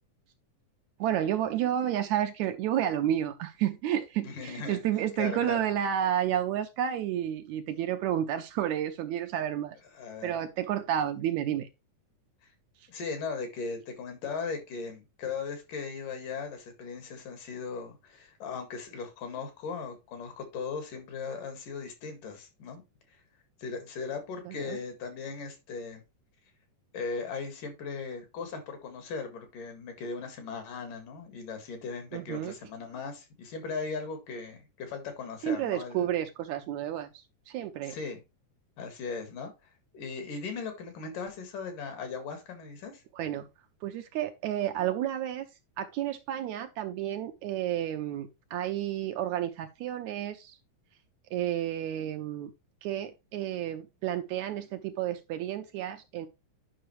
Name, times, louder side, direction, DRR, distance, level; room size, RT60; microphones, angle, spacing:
voice 1, 1.0-9.8 10.2-11.7 24.4-24.8 32.1-32.5 35.4-38.0 43.1-43.5 43.8-45.5 45.8-50.6 51.3-52.5 52.8-56.3, right 11 dB, 80° right, 1.8 m, -31 dB
voice 2, 4.2-4.8 5.2-5.6 9.9-10.4 12.9-22.8 23.1-23.2 23.6-26.0 26.9-36.1 37.8-38.2 38.8-39.5 39.9-43.0, left 5 dB, 80° left, 3.5 m, -38 dB
10.0 x 5.6 x 3.1 m
omnidirectional pair, 3.7 m